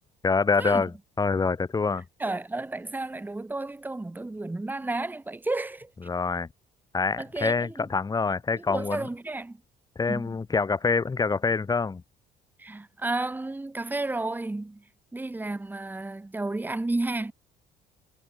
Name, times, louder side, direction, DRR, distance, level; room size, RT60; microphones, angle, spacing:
voice 1, 0.2-2.1 6.0-6.5 6.9-9.0 10.0-12.0, left 4 dB, 20° left, 1.8 m, -26 dB
voice 2, 2.2-5.9 7.2-7.8 8.5-9.6 10.1-10.3 12.6-14.8 15.1-17.3, right 2 dB, 10° right, 1.8 m, -32 dB
cardioid pair, 110°, 17 cm